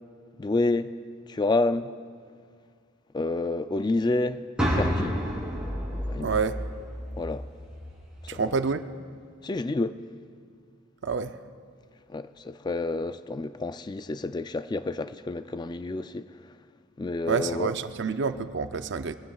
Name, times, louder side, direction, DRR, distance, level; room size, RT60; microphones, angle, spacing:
voice 1, 0.4-1.0 1.3-1.9 3.1-5.2 6.1-6.3 7.2-7.5 8.2-8.4 9.4-10.0 12.1-16.5 17.0-17.7, left 2 dB, 20° left, 0.3 m, -29 dB
sound 1, 4.6-8.5, equal, 5° right, 3.1 m, -30 dB
voice 2, 6.2-6.6 8.3-8.8 11.0-11.4 17.3-19.1, right 5 dB, 60° right, 0.5 m, -28 dB
22.0 x 15.0 x 2.4 m
head